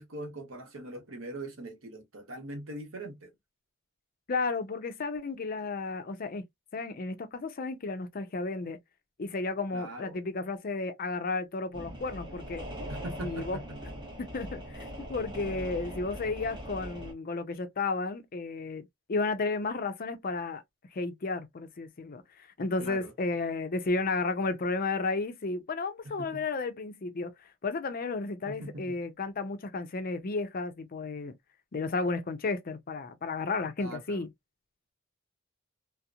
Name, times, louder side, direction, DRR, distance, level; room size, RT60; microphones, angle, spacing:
voice 1, 0.0-3.3 9.7-10.2 12.9-13.8 22.8-23.1 26.0-26.4 28.5-29.0 33.8-34.2, right 1 dB, 65° right, 0.9 m, -41 dB
voice 2, 4.3-6.4 6.7-8.8 9.2-12.6 13.2-13.6 14.2-20.6 20.9-22.2 22.6-27.3 27.6-31.3 31.7-34.3, left 3 dB, 45° left, 0.5 m, -33 dB
sound 1, 11.7-17.1, equal, 20° right, 0.6 m, -41 dB
2.8 x 2.0 x 2.3 m
head